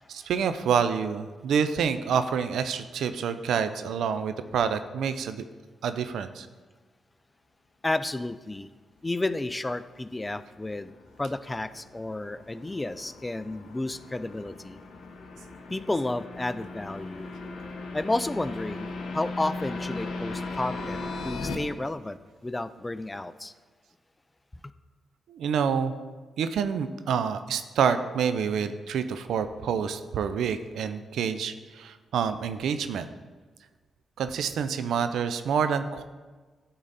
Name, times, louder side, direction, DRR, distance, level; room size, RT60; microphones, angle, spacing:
voice 1, 0.0-5.4 5.8-6.5 25.3-25.9 26.4-33.1 34.2-36.0, right 7 dB, 80° right, 10 dB, 0.4 m, -27 dB
voice 2, 7.8-8.7 9.0-10.9 11.2-14.8 15.7-17.3 17.9-23.5, left 2 dB, 20° left, 14 dB, 0.4 m, -32 dB
sound 1, 10.1-21.6, left 3 dB, 70° left, 0.8 m, -38 dB
9.7 x 3.9 x 4.0 m, 1.3 s
supercardioid pair, 45°, 0 cm